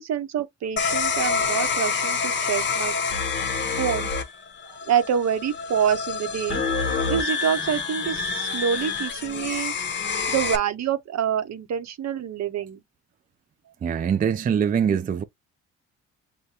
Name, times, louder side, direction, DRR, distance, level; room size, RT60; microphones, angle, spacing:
voice 1, 0.0-3.0 3.8-4.1 4.7-6.6 7.1-9.7 10.3-12.8, right 8 dB, 60° right, 0.8 m, -26 dB
sound 1, 0.8-10.6, left 5 dB, 40° left, 0.8 m, -27 dB
voice 2, 13.8-15.2, right 7 dB, 30° right, 0.4 m, -23 dB
6.6 x 2.2 x 2.7 m
cardioid pair, 90°, 30 cm